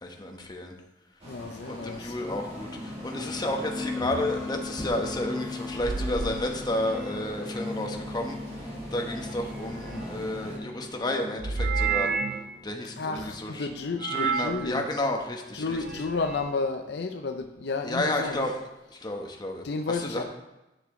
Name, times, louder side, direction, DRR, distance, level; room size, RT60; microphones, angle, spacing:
voice 1, 0.0-0.7 1.7-8.4 8.9-12.1 12.6-13.7 14.0-15.8 17.9-18.5 19.0-19.6 20.1-20.2, left 1 dB, 25° left, 2 dB, 1.1 m, -31 dB
sound 1, 1.2-10.6, equal, 35° right, 2.2 m, -43 dB
voice 2, 1.3-2.2 13.0-14.9 15.5-18.5 19.6-20.2, left 4 dB, 65° left, 6 dB, 0.6 m, -32 dB
sound 2, 2.3-15.2, left 2 dB, 5° right, 0.7 m, -39 dB
sound 3, 4.0-4.3 5.7-7.3 9.2-10.3 11.4-12.5 14.0-14.6 15.6-16.5, right 5 dB, 55° right, 0.6 m, -31 dB
10.0 x 6.6 x 3.7 m, 0.97 s
head